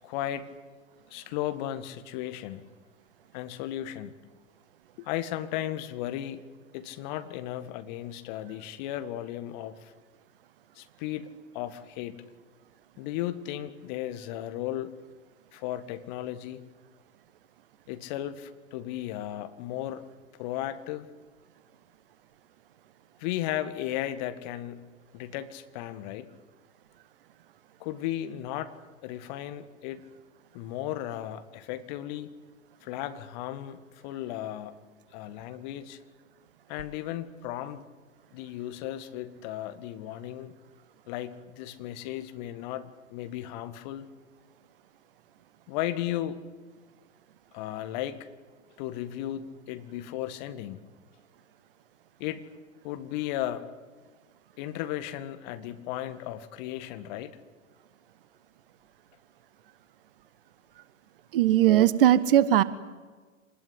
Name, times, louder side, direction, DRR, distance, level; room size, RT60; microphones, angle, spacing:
voice 1, 0.0-0.5 1.1-2.7 3.3-4.2 5.0-6.4 6.7-9.9 10.8-12.2 13.0-14.9 15.5-16.6 17.9-20.0 20.4-21.1 23.2-24.8 25.1-26.3 27.8-28.7 29.0-30.0 30.5-32.3 32.8-34.8 35.1-36.0 36.7-37.9 38.3-40.5 41.1-44.1 45.7-46.4 47.5-48.3 48.8-50.8 52.2-52.4 52.8-53.7 54.6-57.4, left 13 dB, 35° left, 11 dB, 1.9 m, -35 dB
voice 2, 61.3-62.6, right 12 dB, 45° right, 17 dB, 1.2 m, -19 dB
26.0 x 20.5 x 9.8 m, 1.4 s
figure-of-eight pair, 115°, 40 cm